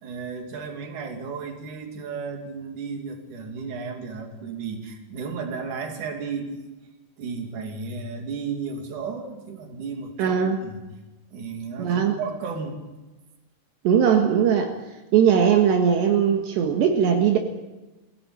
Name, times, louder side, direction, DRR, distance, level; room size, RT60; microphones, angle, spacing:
voice 1, 0.0-6.7 7.2-10.4 10.6-10.8 11.3-12.8, right 5 dB, 45° right, 3 dB, 4.0 m, -34 dB
voice 2, 10.2-10.6 11.8-12.2 13.9-14.8 15.1-17.4, right 8 dB, 75° right, 3 dB, 3.7 m, -19 dB
24.5 x 17.0 x 8.9 m, 1.1 s
omnidirectional pair, 5.2 m